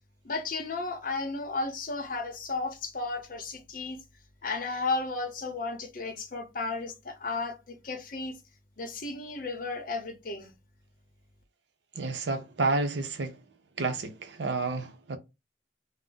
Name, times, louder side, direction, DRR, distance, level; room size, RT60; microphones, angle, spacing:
voice 1, 0.2-4.0 4.4-8.4 8.8-10.5, left 3 dB, 50° left, 0.7 m, -34 dB
voice 2, 11.9-13.4 13.8-15.2, right 3 dB, 85° right, 0.6 m, -30 dB
2.5 x 2.0 x 3.7 m
head